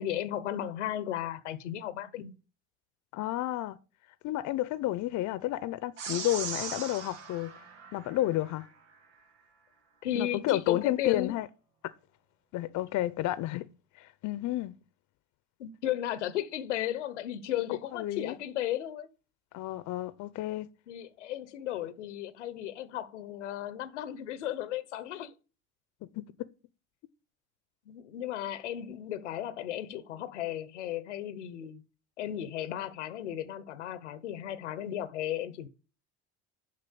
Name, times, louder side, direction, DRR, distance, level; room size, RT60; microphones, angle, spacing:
voice 1, 0.0-2.3 10.0-11.3 15.6-19.1 20.9-25.3 27.9-31.8 32.2-35.7, left 11 dB, 90° left, 0.8 m, -35 dB
voice 2, 3.1-3.8 4.2-7.5 7.9-8.7 10.1-11.5 12.5-13.7 14.0-14.8 17.9-18.4 19.5-20.7 26.0-26.5, left 15 dB, 55° left, 0.7 m, -31 dB
sound 1, 6.0-8.6, right 5 dB, 85° right, 1.3 m, -39 dB
6.7 x 5.5 x 7.0 m
hypercardioid pair, 70°, 34 cm